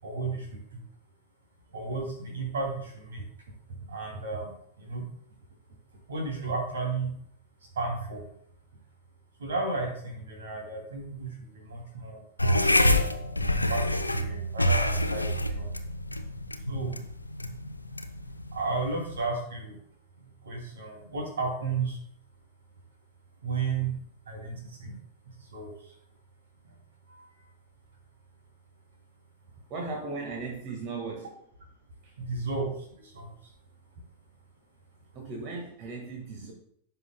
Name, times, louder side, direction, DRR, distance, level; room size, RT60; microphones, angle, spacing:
voice 1, 0.0-0.8 1.7-3.2 3.9-4.5 4.8-5.0 6.1-7.1 7.8-8.2 9.4-11.3 11.5-12.7 13.5-15.7 16.7-17.0 18.5-19.7 20.4-22.0 23.4-23.9 24.3-25.0 25.5-25.7 27.2-27.3 32.2-33.3, right 3 dB, 65° right, 1 dB, 2.7 m, -33 dB
sound 1, 12.4-19.3, left 1 dB, 85° left, 0.6 m, -27 dB
voice 2, 29.7-31.4 32.0-32.2 35.1-36.5, right 3 dB, 40° right, -1 dB, 1.7 m, -37 dB
15.5 x 5.7 x 2.3 m, 0.66 s
figure-of-eight pair, 90°, 0 cm